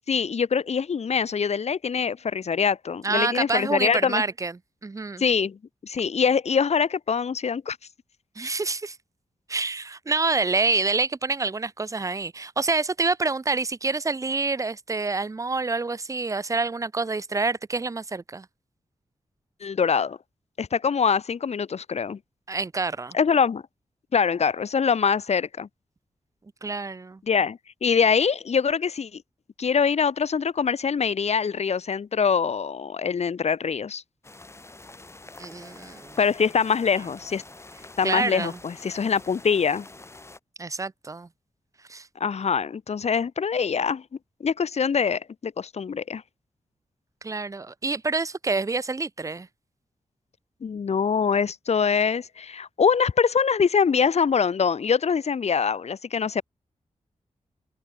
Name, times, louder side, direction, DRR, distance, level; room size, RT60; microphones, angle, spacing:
voice 1, 0.1-4.2 5.2-5.6 5.8-7.8 19.6-20.2 20.6-22.2 23.1-23.6 24.1-25.7 27.3-29.2 29.6-34.0 36.2-37.4 38.0-39.9 42.2-44.0 44.4-46.2 50.6-56.4, left 6 dB, 60° left, 1.3 m, -24 dB
voice 2, 3.0-4.6 4.8-5.2 8.4-9.0 9.5-18.5 22.5-23.2 26.6-27.2 35.4-36.2 38.0-38.6 40.6-41.3 41.9-42.1 47.2-49.5, right 3 dB, 25° right, 0.8 m, -27 dB
sound 1, 34.2-40.4, left 2 dB, 20° left, 2.2 m, -46 dB
wide cardioid pair, 130°, 13 cm